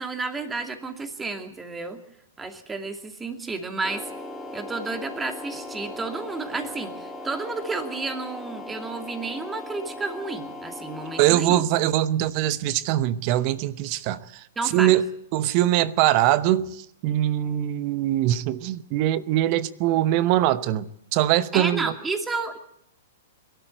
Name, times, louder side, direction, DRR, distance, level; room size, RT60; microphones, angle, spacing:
voice 1, 0.0-2.0 2.4-4.0 4.5-11.6 14.6-15.0 21.5-22.6, right 3 dB, 10° right, 2.5 m, -31 dB
sound 1, 3.8-11.4, left 2 dB, 10° left, 3.2 m, -38 dB
voice 2, 11.2-14.4 14.7-20.8 21.1-21.9, right 13 dB, 40° right, 0.9 m, -22 dB
23.0 x 12.5 x 9.2 m
figure-of-eight pair, 110°, 0 cm